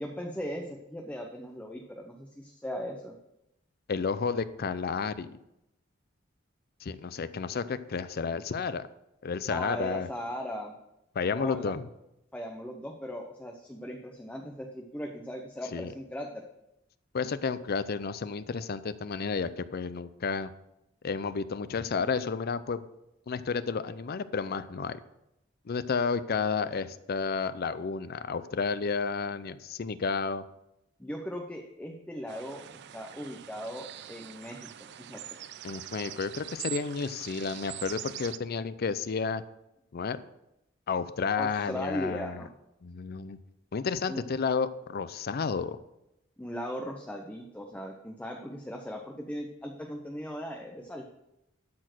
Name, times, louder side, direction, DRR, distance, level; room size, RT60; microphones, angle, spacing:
voice 1, 0.0-3.2 9.5-10.8 11.3-11.7 12.3-16.4 31.0-32.6 32.9-34.7 35.0-35.2 41.4-42.5 44.1-44.2 46.4-51.1, equal, 5° left, 2 dB, 0.7 m, -38 dB
voice 2, 3.9-5.4 6.8-8.9 9.2-10.1 11.2-11.9 15.7-15.9 17.1-20.5 21.0-22.8 23.3-25.0 25.7-30.4 35.6-39.4 39.9-40.2 40.9-42.5 42.8-43.4 43.7-45.8, left 5 dB, 50° left, 14 dB, 0.5 m, -31 dB
sound 1, 32.3-38.4, right 12 dB, 60° right, 0.4 m, -43 dB
12.5 x 4.4 x 6.1 m, 0.87 s
head